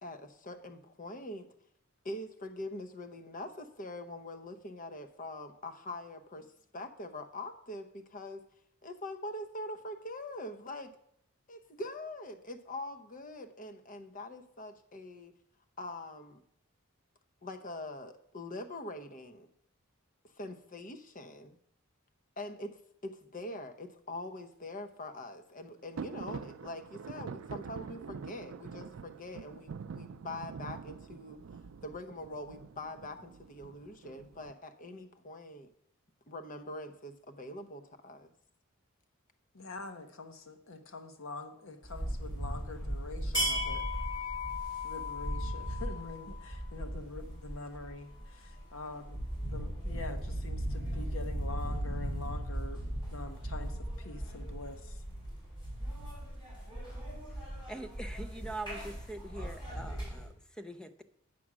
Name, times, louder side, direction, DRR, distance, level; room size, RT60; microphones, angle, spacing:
voice 1, 0.0-1.5 2.0-6.5 6.7-8.4 8.8-10.9 11.5-15.3 15.8-16.4 17.4-19.5 20.4-21.6 22.4-31.4 31.8-35.7 36.3-38.3, left 1 dB, 40° left, 7 dB, 0.8 m, -43 dB
sound 1, 26.0-34.5, right 5 dB, 70° right, 0.4 m, -45 dB
voice 2, 39.5-43.8 44.8-49.2 49.5-55.0, left 3 dB, 65° left, 7 dB, 1.0 m, -45 dB
sound 2, 41.8-60.3, equal, 20° left, 4.1 m, -37 dB
voice 3, 57.7-61.0, right 2 dB, 5° left, 9 dB, 0.4 m, -43 dB
8.5 x 6.1 x 6.1 m, 0.71 s
head